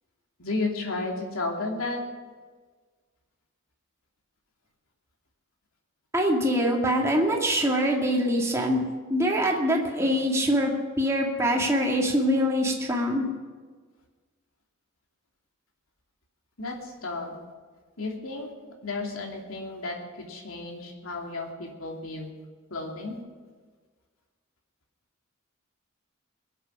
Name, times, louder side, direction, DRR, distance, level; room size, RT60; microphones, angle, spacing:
voice 1, 0.4-2.0 16.6-17.3 18.0-18.5 18.8-22.3 22.7-23.2, left 3 dB, 85° left, 0 dB, 2.8 m, -33 dB
voice 2, 6.1-8.8 9.1-13.3, equal, 15° right, -1 dB, 2.1 m, -24 dB
22.0 x 8.1 x 6.1 m, 1.5 s
head